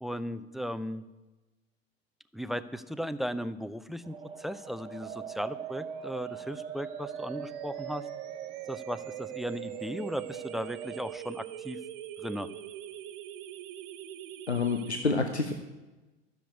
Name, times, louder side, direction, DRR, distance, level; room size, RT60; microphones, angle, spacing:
voice 1, 0.0-1.1 2.3-8.1 8.7-11.8 12.2-12.5, equal, ahead, 15 dB, 0.4 m, -36 dB
sound 1, 4.0-11.2, right 5 dB, 15° right, 0.9 m, -46 dB
sound 2, 5.0-15.0, right 11 dB, 50° right, 1.4 m, -41 dB
voice 2, 14.5-15.5, left 4 dB, 90° left, 6 dB, 1.0 m, -28 dB
13.0 x 7.2 x 8.1 m, 1.1 s
figure-of-eight pair, 85°, 32 cm